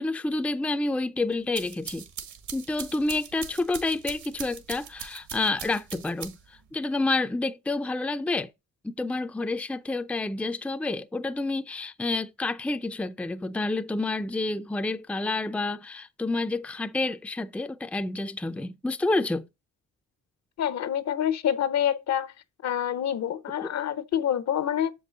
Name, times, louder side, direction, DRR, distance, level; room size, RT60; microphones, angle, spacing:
voice 1, 0.0-2.1 2.5-6.4 6.7-8.5 8.8-19.5 23.6-23.7, left 2 dB, 5° left, 0.5 m, -29 dB
sound 1, 1.3-6.6, right 7 dB, 70° right, 1.5 m, -41 dB
voice 2, 20.6-22.3 22.6-24.9, left 9 dB, 60° left, 0.8 m, -27 dB
7.1 x 5.4 x 3.8 m
cardioid pair, 90°, 30 cm